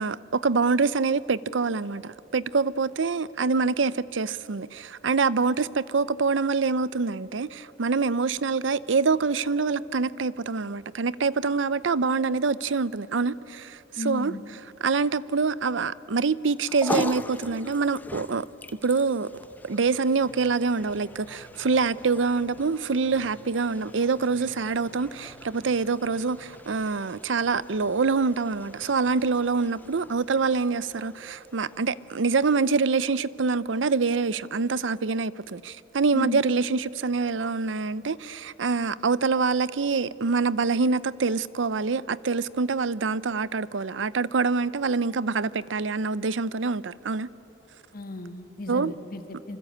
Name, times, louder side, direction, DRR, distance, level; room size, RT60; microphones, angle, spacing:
voice 1, 0.0-14.3 14.8-18.5 18.8-19.3 19.6-47.3 48.7-48.9, right 4 dB, 85° right, 0.6 m, -25 dB
voice 2, 14.0-14.4 36.1-36.4 47.9-49.6, left 2 dB, 50° left, 1.5 m, -35 dB
sound 1, 16.4-32.9, left 1 dB, 10° left, 0.8 m, -41 dB
sound 2, 20.2-27.0, left 1 dB, 85° left, 2.0 m, -55 dB
26.5 x 25.0 x 8.6 m
head